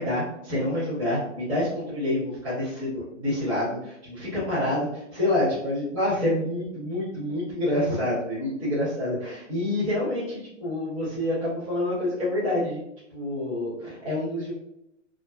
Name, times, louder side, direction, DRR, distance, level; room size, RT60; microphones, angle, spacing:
voice 1, 0.0-12.8 13.1-14.5, left 1 dB, 25° right, -11 dB, 0.7 m, -27 dB
2.4 x 2.4 x 2.2 m, 0.81 s
hypercardioid pair, 175°, 38 cm